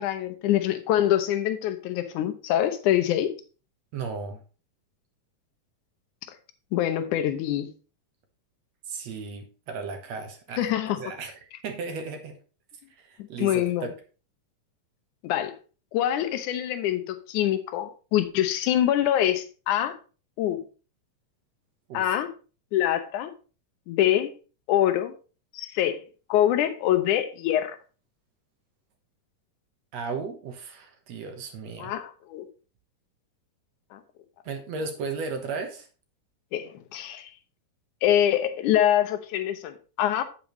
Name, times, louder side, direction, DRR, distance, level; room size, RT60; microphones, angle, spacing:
voice 1, 0.0-3.3 6.7-7.7 10.6-11.0 13.4-13.9 15.2-15.5 15.9-20.0 20.4-20.6 21.9-22.3 22.7-23.3 23.9-24.3 24.7-25.1 25.5-26.0 26.3-27.8 31.8-32.5 33.9-34.0 36.5-37.3 38.0-40.2, left 11 dB, 75° left, 2.3 m, -25 dB
voice 2, 3.9-4.4 8.9-12.3 13.0-13.9 21.9-22.1 29.9-32.0 34.4-35.9, right 4 dB, 65° right, 2.0 m, -35 dB
8.6 x 8.4 x 3.1 m
omnidirectional pair, 3.7 m